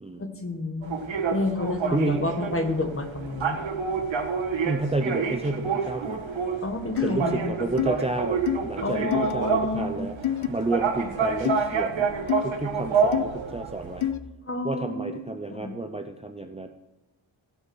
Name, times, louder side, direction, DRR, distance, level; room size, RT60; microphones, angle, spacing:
voice 1, 0.2-0.9 1.3-3.6 6.6-7.5 8.8-10.1 14.5-15.2 15.5-15.7, left 2 dB, 25° left, 6 dB, 1.3 m, -29 dB
sound 1, 0.8-14.1, right 5 dB, 70° right, 1.6 m, -28 dB
voice 2, 1.9-2.3 4.6-6.3 7.0-10.2 10.5-12.1 12.4-14.1 14.6-16.7, right 2 dB, 15° right, 5 dB, 0.5 m, -30 dB
sound 2, 7.0-7.1 7.8-7.9 8.5-8.6 9.1-9.3 10.2-10.5 11.4-11.6 12.3-12.4 13.1-13.2 14.0-14.2, left 11 dB, 80° left, 0.6 m, -26 dB
16.0 x 5.7 x 6.1 m, 0.98 s
wide cardioid pair, 150°, 48 cm